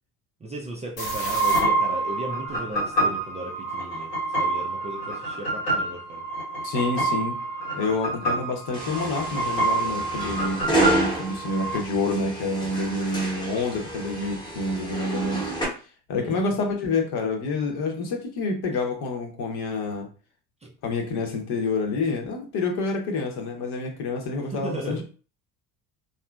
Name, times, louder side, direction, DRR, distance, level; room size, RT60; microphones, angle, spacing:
voice 1, 0.4-6.3 16.1-16.6 20.6-20.7 24.4-25.0, right 2 dB, 15° right, 0.4 m, -36 dB
sound 1, 1.0-11.8, right 2 dB, 90° left, 1.3 m, -27 dB
voice 2, 6.6-7.4 7.7-15.5 16.1-20.1 20.8-25.0, left 3 dB, 55° left, 1.0 m, -28 dB
sound 2, 8.7-15.6, right 1 dB, 10° left, 1.0 m, -30 dB
2.8 x 2.5 x 2.2 m
hypercardioid pair, 60°, 46 cm